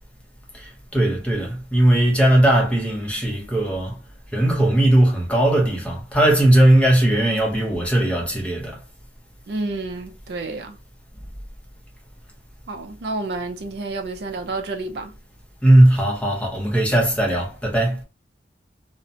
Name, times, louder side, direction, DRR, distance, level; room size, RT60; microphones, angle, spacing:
voice 1, 0.5-4.0 4.3-8.8 15.6-18.0, right 1 dB, 5° left, 0.6 m, -18 dB
voice 2, 9.5-10.8 12.7-15.1, right 3 dB, 65° right, 0.4 m, -30 dB
2.6 x 2.0 x 2.6 m
head